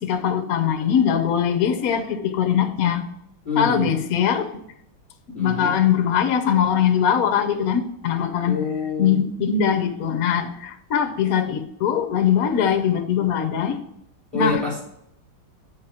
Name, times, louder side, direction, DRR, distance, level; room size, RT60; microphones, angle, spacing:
voice 1, 0.0-3.1 3.6-4.6 5.4-8.6 9.0-13.8 14.3-14.5, left 8 dB, 60° left, 0.9 m, -21 dB
voice 2, 3.4-4.0 5.3-5.8 8.5-9.3 14.3-14.8, left 4 dB, 10° right, 3.1 m, -26 dB
8.3 x 4.8 x 4.3 m
omnidirectional pair, 2.3 m